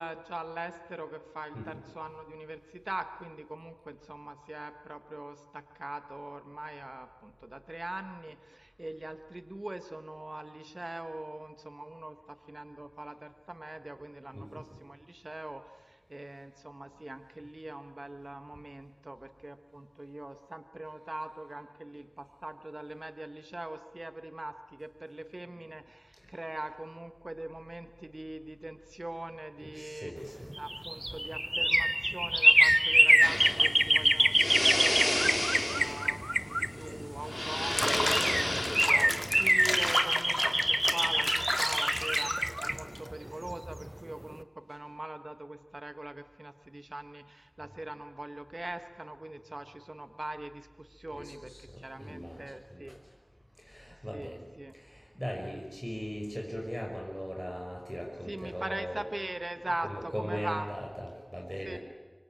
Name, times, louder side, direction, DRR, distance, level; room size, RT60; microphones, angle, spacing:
voice 1, 0.0-30.1 30.6-53.0 54.1-54.3 54.6-54.7 58.3-60.7 61.6-61.8, right 1 dB, 55° right, 9 dB, 1.3 m, -42 dB
voice 2, 14.3-14.6 26.2-26.3 29.6-30.5 34.9-35.0 37.8-39.3 42.7-42.8 51.1-53.0 53.6-54.5 54.7-59.0 59.8-61.8, equal, ahead, 0 dB, 5.6 m, -39 dB
sound 1, 30.4-37.2 37.8-37.9 38.1-43.9 44.2-44.3, right 1 dB, 20° right, 1.1 m, -26 dB
sound 2, 33.2-39.9, left 1 dB, 35° left, 2.7 m, -33 dB
Water / Bathtub (filling or washing), 37.6-43.1, equal, 15° left, 2.4 m, -33 dB
26.0 x 24.0 x 9.0 m, 1.3 s
wide cardioid pair, 40°, 0 cm